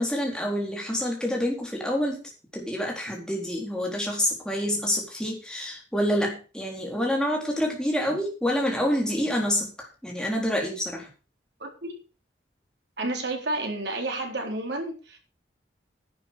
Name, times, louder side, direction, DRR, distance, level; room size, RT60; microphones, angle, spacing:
voice 1, 0.0-2.2 2.5-9.7 10.0-11.1, equal, 5° left, -1 dB, 4.0 m, -27 dB
voice 2, 11.6-11.9 13.0-15.2, right 2 dB, 75° right, 2 dB, 4.0 m, -31 dB
11.0 x 8.9 x 6.4 m, 0.34 s
head